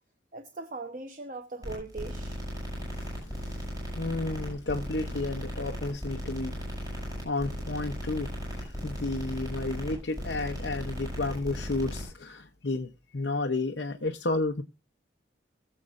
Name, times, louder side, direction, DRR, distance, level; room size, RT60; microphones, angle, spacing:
voice 1, 0.3-2.4, right 3 dB, 45° right, 0.9 m, -40 dB
sound 1, 1.6-12.1, equal, 20° right, 6.5 m, -36 dB
voice 2, 2.8-14.6, left 2 dB, 70° left, 0.8 m, -32 dB
21.5 x 7.6 x 2.5 m
head